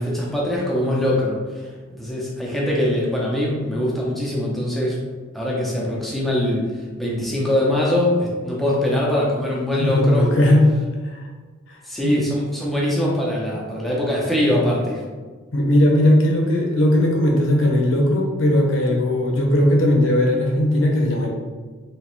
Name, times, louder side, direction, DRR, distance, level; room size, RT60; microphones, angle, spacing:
voice 1, 0.0-5.0 5.3-10.3 11.8-15.0, left 1 dB, ahead, -5 dB, 0.7 m, -22 dB
voice 2, 9.8-10.6 11.0-11.3 11.7-11.8 12.0-12.1 14.4-14.6 15.5-21.3, left 1 dB, 80° left, 0 dB, 0.8 m, -18 dB
3.4 x 2.9 x 3.1 m, 1.4 s
head